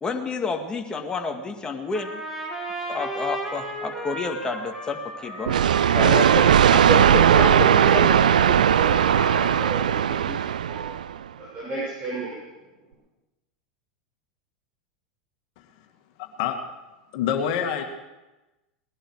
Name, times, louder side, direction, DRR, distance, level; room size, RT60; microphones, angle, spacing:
voice 1, 0.0-2.2 2.9-6.2 6.7-8.2, left 4 dB, 20° left, 3 dB, 2.0 m, -30 dB
Trumpet, 1.9-10.0, right 1 dB, 5° right, 4.8 m, -33 dB
sound 1, 5.5-11.2, right 9 dB, 80° right, 0.4 m, -18 dB
voice 2, 6.0-6.5 6.9-7.4 7.8-11.0 11.4-12.4, right 2 dB, 35° right, -6 dB, 6.6 m, -30 dB
voice 3, 16.2-16.6 17.1-17.8, left 9 dB, 60° left, 4 dB, 2.1 m, -26 dB
19.5 x 11.0 x 4.8 m, 1.1 s
hypercardioid pair, 90°, 4 cm